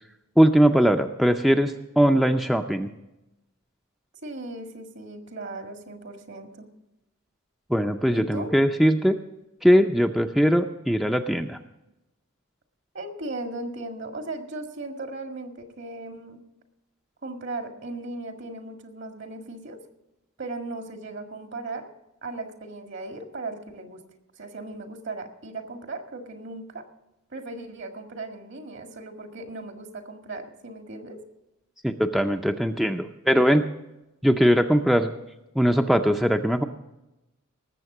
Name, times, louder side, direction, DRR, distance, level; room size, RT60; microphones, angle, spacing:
voice 1, 0.4-2.9 7.7-9.2 9.6-11.6 31.8-33.7 34.2-35.1 35.5-36.6, equal, ahead, 6 dB, 0.5 m, -20 dB
voice 2, 4.2-6.7 8.1-8.5 12.9-16.4 17.2-19.8 20.4-21.9 22.2-24.0 24.4-26.8 27.3-31.2, right 2 dB, 60° right, 6 dB, 1.8 m, -37 dB
19.0 x 7.5 x 6.0 m, 0.95 s
head